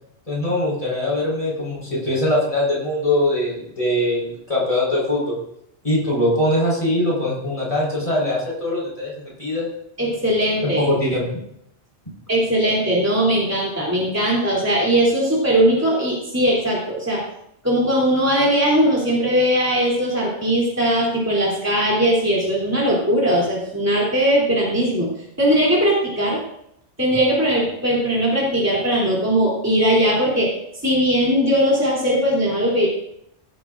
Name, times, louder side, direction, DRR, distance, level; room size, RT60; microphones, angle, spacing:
voice 1, 0.3-5.4 5.8-9.1 9.4-9.7 10.6-11.3, left 1 dB, 30° left, -5 dB, 4.7 m, -22 dB
voice 2, 10.0-10.9 12.3-17.2 17.6-25.1 25.4-26.4 27.0-30.5 30.8-32.9, equal, 15° right, -5 dB, 3.1 m, -19 dB
18.0 x 10.0 x 2.6 m, 0.75 s
omnidirectional pair, 1.2 m